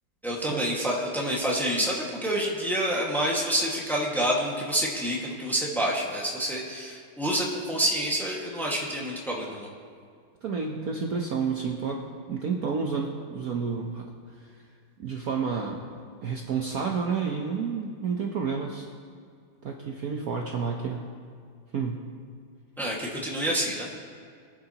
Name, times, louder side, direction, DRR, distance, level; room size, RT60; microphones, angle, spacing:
voice 1, 0.2-9.7 22.8-23.9, right 1 dB, ahead, -3 dB, 1.5 m, -28 dB
voice 2, 10.4-12.0 12.3-14.1 15.0-15.8 16.2-18.8 19.6-21.0 21.7-22.0, right 5 dB, 55° right, 0 dB, 1.2 m, -30 dB
22.0 x 9.8 x 3.0 m, 2.2 s
omnidirectional pair, 2.2 m